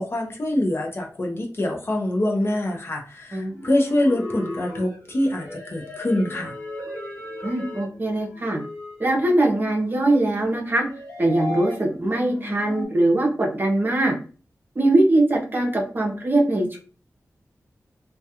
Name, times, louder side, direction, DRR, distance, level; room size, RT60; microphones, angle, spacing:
voice 1, 0.0-6.5, left 1 dB, 40° left, 0 dB, 0.7 m, -25 dB
sound 1, 3.5-12.9, left 1 dB, 25° left, 1.2 m, -37 dB
voice 2, 7.4-8.6 9.0-10.9 11.2-14.2 14.8-16.8, right 1 dB, 35° right, 1 dB, 0.6 m, -21 dB
2.3 x 2.2 x 2.8 m, 0.39 s
wide cardioid pair, 90°, 6 cm